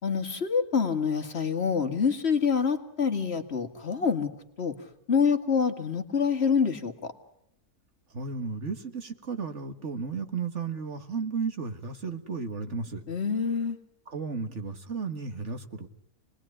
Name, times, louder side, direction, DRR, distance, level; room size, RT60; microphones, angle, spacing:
voice 1, 0.0-4.3 4.6-4.8 5.1-7.1 13.1-13.8, left 6 dB, 40° left, 7 dB, 2.1 m, -26 dB
voice 2, 8.1-13.0 14.1-15.9, right 5 dB, 50° right, 7 dB, 1.8 m, -34 dB
29.0 x 20.5 x 9.9 m, 0.77 s
omnidirectional pair, 1.7 m